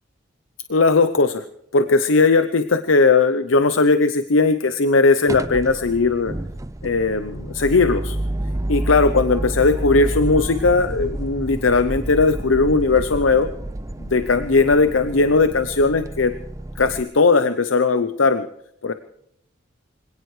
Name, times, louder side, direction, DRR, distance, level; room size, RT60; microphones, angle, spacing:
voice 1, 0.7-1.4 1.7-6.3 6.8-8.2 8.7-13.5 14.1-16.3 16.8-18.5 18.8-18.9, left 3 dB, 75° left, 10 dB, 0.8 m, -18 dB
sound 1, 5.3-17.0, right 1 dB, 15° right, 0.5 m, -29 dB
25.0 x 17.5 x 3.3 m, 0.76 s
head